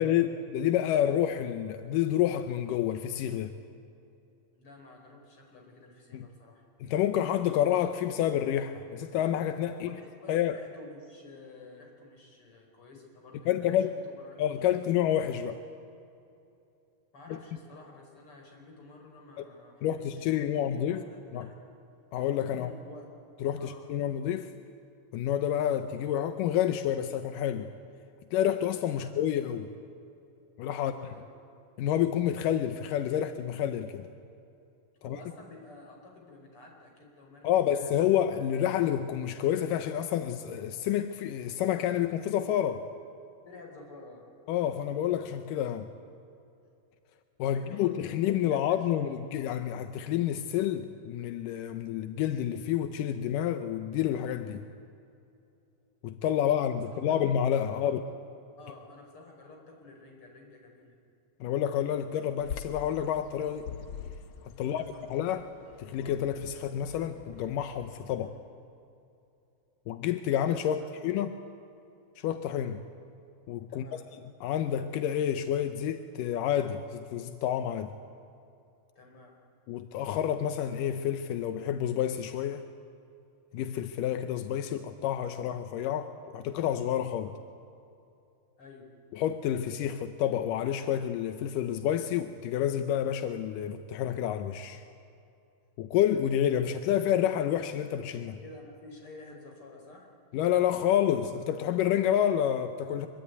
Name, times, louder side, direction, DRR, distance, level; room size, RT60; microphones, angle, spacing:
voice 1, 0.0-3.5 6.1-6.3 6.8-9.9 10.3-10.6 13.5-14.0 14.4-15.6 17.3-17.4 19.4-19.5 19.8-21.0 21.3-21.5 22.1-22.7 23.4-24.5 25.1-27.7 28.3-29.7 30.6-30.9 31.8-34.1 35.0-35.2 37.4-42.8 44.5-45.9 47.4-54.7 56.0-58.0 61.4-63.7 64.6-64.9 65.1-65.5 65.8-68.3 69.9-71.4 72.2-72.8 73.5-73.9 74.4-77.9 79.7-82.6 83.5-87.3 89.1-94.8 95.8-98.4 100.3-103.1, left 10 dB, 85° left, 9 dB, 2.5 m, -29 dB
voice 2, 4.5-6.7 9.7-14.4 17.1-19.9 20.2-21.6 22.5-23.1 23.6-23.9 28.9-29.1 30.8-31.3 35.0-38.2 43.5-44.3 47.5-49.1 56.9-57.2 57.8-58.0 58.6-61.0 64.6-65.0 68.2-68.4 70.7-71.0 73.7-74.1 79.0-79.4 87.2-87.4 88.6-88.9 98.4-100.1, left 3 dB, 40° left, 1 dB, 5.6 m, -51 dB
Bird vocalization bird call bird song, 62.4-68.1, left 7 dB, 55° left, 1.5 m, -45 dB
24.0 x 23.5 x 9.5 m, 2.7 s
omnidirectional pair, 3.7 m